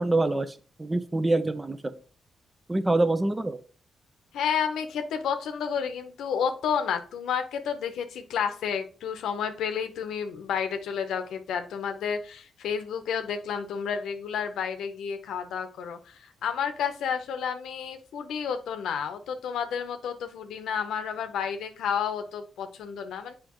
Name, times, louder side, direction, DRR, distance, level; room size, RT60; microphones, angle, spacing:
voice 1, 0.0-1.9 2.7-3.6, right 2 dB, 20° right, 10 dB, 0.7 m, -25 dB
voice 2, 4.3-23.4, left 7 dB, 85° left, 8 dB, 0.8 m, -31 dB
7.2 x 5.1 x 3.0 m, 0.38 s
cardioid pair, 65°, 0 cm